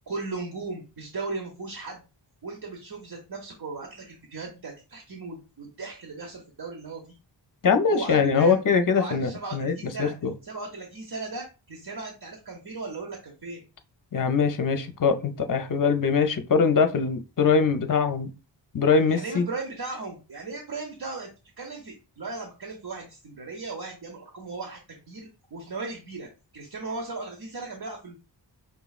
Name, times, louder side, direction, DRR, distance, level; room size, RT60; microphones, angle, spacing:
voice 1, 0.1-2.0 2.4-7.2 7.9-8.6 8.9-10.1 10.4-13.6 19.1-21.3 21.6-28.1, right 3 dB, 55° right, 0.9 m, -37 dB
voice 2, 7.6-9.7 10.0-10.3 14.1-18.3 18.7-19.5, left 5 dB, 45° left, 0.6 m, -22 dB
5.4 x 3.0 x 2.3 m
wide cardioid pair, 80°, 44 cm